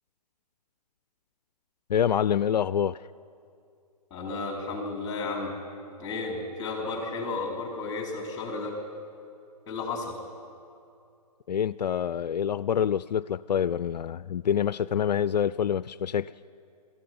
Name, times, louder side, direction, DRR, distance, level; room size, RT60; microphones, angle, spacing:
voice 1, 1.9-3.0 11.5-16.3, left 8 dB, 80° left, 17 dB, 0.4 m, -26 dB
voice 2, 4.1-5.5 6.0-8.8 9.7-10.2, left 3 dB, 20° left, 0 dB, 4.5 m, -33 dB
21.5 x 14.5 x 9.6 m, 2.5 s
hypercardioid pair, 145°, 21 cm